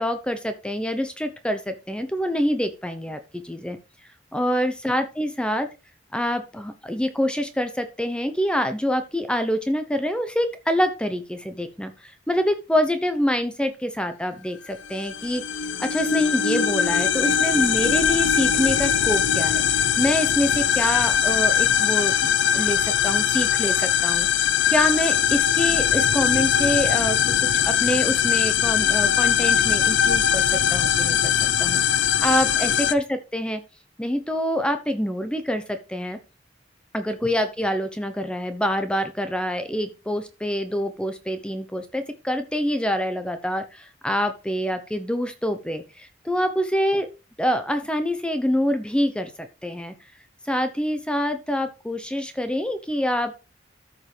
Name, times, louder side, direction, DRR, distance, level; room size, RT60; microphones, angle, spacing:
voice 1, 0.0-3.8 4.3-5.7 6.1-15.4 15.8-19.6 20.0-24.3 24.7-31.3 31.6-31.8 32.2-33.6 34.0-36.2 36.9-47.1 47.4-49.3 49.6-49.9 50.4-53.4, equal, 5° left, 8 dB, 0.8 m, -26 dB
sound 1, 14.8-32.9, left 8 dB, 85° left, 0.6 m, -21 dB
14.0 x 5.3 x 3.3 m, 0.30 s
head